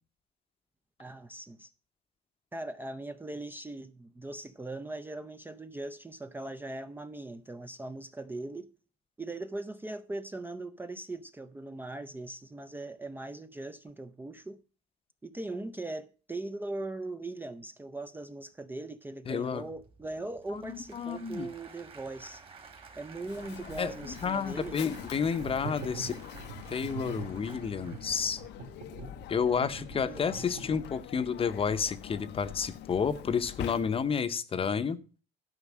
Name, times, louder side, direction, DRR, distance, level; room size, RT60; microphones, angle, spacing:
voice 1, 1.0-1.7 2.5-8.7 9.2-14.6 15.2-22.4 23.0-24.8 30.1-30.2, right 2 dB, 10° right, 0.5 m, -40 dB
voice 2, 19.3-19.6 20.5-21.5 23.8-26.2 26.7-28.4 29.3-35.0, left 6 dB, 30° left, 0.8 m, -31 dB
Applause / Crowd, 19.5-29.0, right 5 dB, 25° right, 1.9 m, -53 dB
Mechanisms, 23.2-34.3, left 12 dB, 60° left, 0.6 m, -45 dB
sound 1, 25.1-31.2, right 5 dB, 60° right, 2.3 m, -44 dB
12.0 x 5.3 x 7.2 m
cardioid pair, 125°, 20 cm